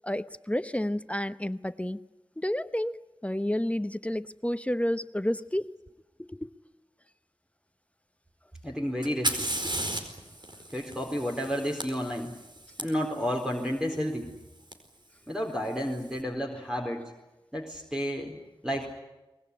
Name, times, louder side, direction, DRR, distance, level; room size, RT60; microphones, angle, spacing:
voice 1, 0.0-2.0 2.4-5.8 6.2-6.5 9.6-9.8, left 1 dB, 15° left, 0.9 m, -31 dB
voice 2, 8.6-9.5 10.7-12.3 12.8-14.3 15.3-17.0 17.5-18.4 18.6-18.9, equal, 10° right, 4.1 m, -31 dB
Fire, 9.0-12.8 14.7-14.8 15.6-16.1, right 1 dB, 55° right, 4.6 m, -34 dB
24.0 x 21.5 x 9.9 m
wide cardioid pair, 50°, 9 cm